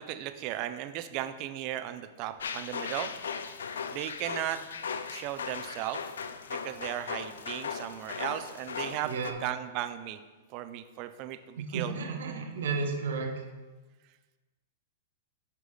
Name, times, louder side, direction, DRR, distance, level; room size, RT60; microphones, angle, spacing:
voice 1, 0.0-3.1 3.9-4.6 5.1-6.0 6.5-9.1 9.4-10.2 10.5-11.9, right 13 dB, 45° right, 10 dB, 0.6 m, -36 dB
sound 1, 2.4-9.3, left 6 dB, 80° left, 0.5 m, -38 dB
voice 2, 9.0-9.4 11.6-13.4, right 4 dB, 75° right, 2 dB, 1.6 m, -33 dB
9.9 x 4.8 x 4.0 m, 1.3 s
hypercardioid pair, 115°, 0 cm